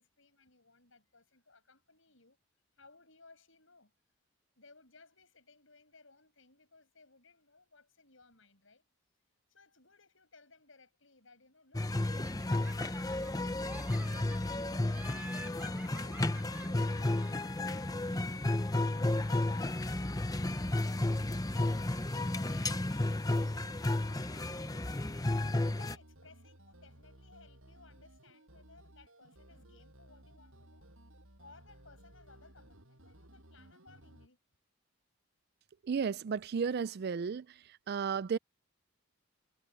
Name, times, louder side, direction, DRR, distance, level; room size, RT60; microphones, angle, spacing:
voice 1, 0.0-2.4 2.7-3.9 4.6-8.8 9.5-13.5 14.0-22.0 22.4-24.9 25.6-30.9 31.4-34.4, left 3 dB, 65° left, 7.7 m, -62 dB
sound 1, 11.7-26.0, left 2 dB, 15° left, 0.7 m, -33 dB
Laughter, 12.2-13.3 13.6-14.6 14.9-17.7, right 1 dB, 10° right, 5.7 m, -51 dB
sound 2, 23.2-34.3, right 1 dB, 75° right, 7.0 m, -58 dB
voice 2, 35.9-37.4 37.9-38.4, right 6 dB, 50° right, 0.4 m, -33 dB
head